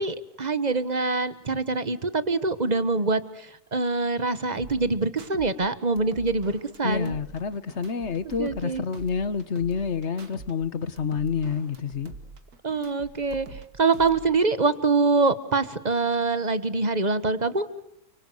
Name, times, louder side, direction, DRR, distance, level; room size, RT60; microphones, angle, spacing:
voice 1, 0.0-7.2 8.4-8.8 12.6-17.7, right 3 dB, 30° right, 1.3 m, -25 dB
sound 1, 4.6-5.5 5.8-8.7 8.9-10.5 10.8-13.6 13.9-14.6, right 4 dB, 90° right, 2.4 m, -44 dB
voice 2, 6.8-12.1, left 6 dB, 50° left, 1.4 m, -28 dB
29.5 x 24.5 x 7.9 m
omnidirectional pair, 1.6 m